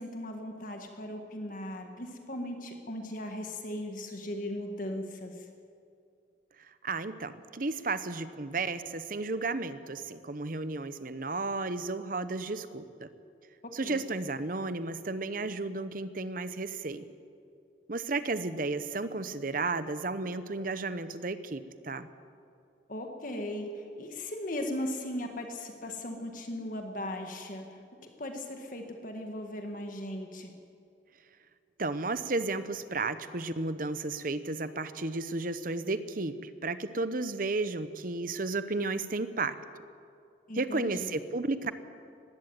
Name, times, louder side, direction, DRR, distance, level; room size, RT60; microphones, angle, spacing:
voice 1, 0.0-5.5 13.6-14.0 22.9-27.8 28.2-30.5 40.5-41.1, left 1 dB, 45° left, 4 dB, 1.8 m, -38 dB
voice 2, 6.8-13.1 13.7-17.0 17.9-22.1 31.8-39.6 40.5-41.7, right 3 dB, 50° right, 12 dB, 0.9 m, -33 dB
19.5 x 16.0 x 9.1 m, 2.5 s
head